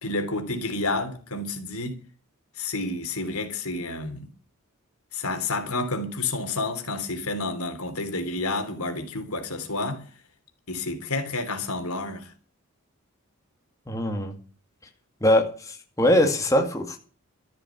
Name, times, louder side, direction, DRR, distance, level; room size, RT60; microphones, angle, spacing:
voice 1, 0.0-2.0 2.6-4.3 5.1-10.0 10.7-12.3, left 2 dB, 85° left, 3.4 m, -30 dB
voice 2, 13.9-14.3 15.2-17.0, left 1 dB, 15° left, 2.2 m, -22 dB
13.5 x 7.6 x 8.5 m
head